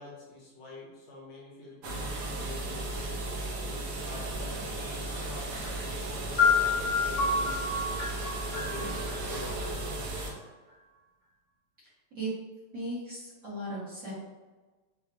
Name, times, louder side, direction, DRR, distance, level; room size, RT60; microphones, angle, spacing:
voice 1, 0.0-3.0 3.5-7.6 8.4-9.8, left 2 dB, 70° left, -4 dB, 1.7 m, -46 dB
sound 1, 1.8-10.3, right 2 dB, 65° right, 1.1 m, -35 dB
sound 2, 6.4-10.2, left 4 dB, 40° left, 1.3 m, -29 dB
voice 2, 12.7-14.1, right 1 dB, 45° right, -9 dB, 1.5 m, -36 dB
4.8 x 2.4 x 3.0 m, 1.3 s
omnidirectional pair, 2.4 m